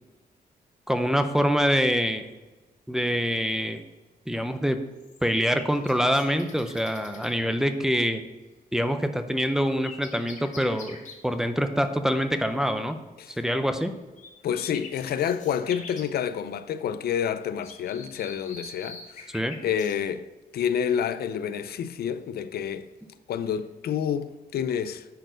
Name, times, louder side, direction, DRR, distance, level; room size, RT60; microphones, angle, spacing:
voice 1, 0.9-2.2 2.9-3.8 4.3-4.8 5.2-8.2 8.7-11.0 11.2-13.0 13.4-13.9 19.3-19.6, equal, 5° right, 0.5 m, -25 dB
sound 1, 5.0-7.4 9.4-11.2 14.2-14.3 14.5-16.1 17.6-20.0 23.3-23.6, left 4 dB, 50° left, 1.4 m, -44 dB
voice 2, 14.4-19.3 19.6-20.3 20.5-22.9 23.3-25.1, left 8 dB, 90° left, 0.5 m, -28 dB
10.0 x 4.4 x 5.1 m
wide cardioid pair, 155°, 16 cm